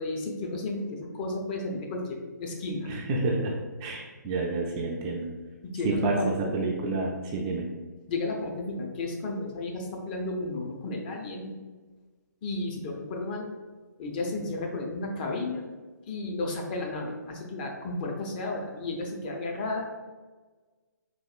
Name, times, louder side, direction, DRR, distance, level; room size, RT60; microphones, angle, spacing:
voice 1, 0.0-2.9 5.6-6.6 8.1-11.5 12.4-13.5 14.0-15.6 16.1-19.9, left 2 dB, 30° left, 1 dB, 0.5 m, -33 dB
voice 2, 2.9-3.5 3.8-5.3 5.8-7.7, right 3 dB, 20° right, -1 dB, 0.3 m, -29 dB
4.0 x 2.9 x 2.4 m, 1.3 s
figure-of-eight pair, 140°, 10 cm